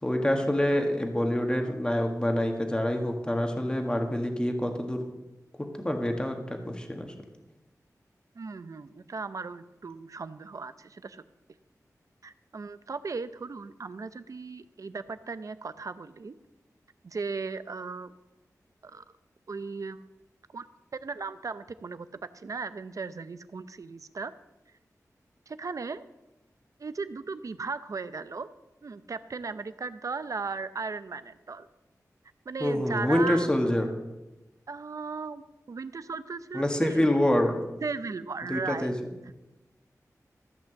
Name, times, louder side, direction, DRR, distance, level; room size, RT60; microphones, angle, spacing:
voice 1, 0.0-5.0 5.6-7.1 32.6-33.9 36.5-37.6 38.5-38.9, left 1 dB, 15° left, 3 dB, 1.6 m, -26 dB
voice 2, 8.3-11.2 12.2-16.3 17.0-18.1 18.8-19.0 19.5-20.1 20.5-20.7 21.0-22.1 22.3-24.3 25.5-26.1 26.8-28.5 28.8-31.7 32.5-33.5 34.7-37.1 37.8-39.0, right 4 dB, 60° right, 13 dB, 0.6 m, -36 dB
14.0 x 5.9 x 7.6 m, 1.0 s
wide cardioid pair, 95°, 6 cm